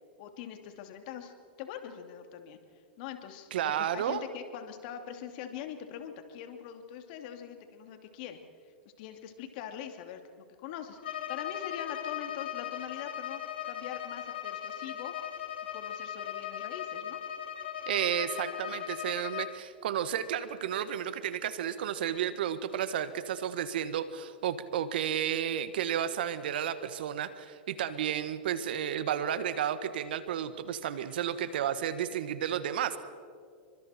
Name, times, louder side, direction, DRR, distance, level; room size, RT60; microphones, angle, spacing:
voice 1, 0.2-2.6 3.0-3.5 3.8-8.4 9.0-15.1 15.7-17.2, left 9 dB, 60° left, 6 dB, 2.8 m, -43 dB
voice 2, 3.5-4.2 17.9-33.0, right 9 dB, 75° right, 12 dB, 1.7 m, -32 dB
Bowed string instrument, 11.0-19.6, left 10 dB, 75° left, 2.4 m, -38 dB
30.0 x 24.0 x 4.5 m, 2.2 s
hypercardioid pair, 105°, 5 cm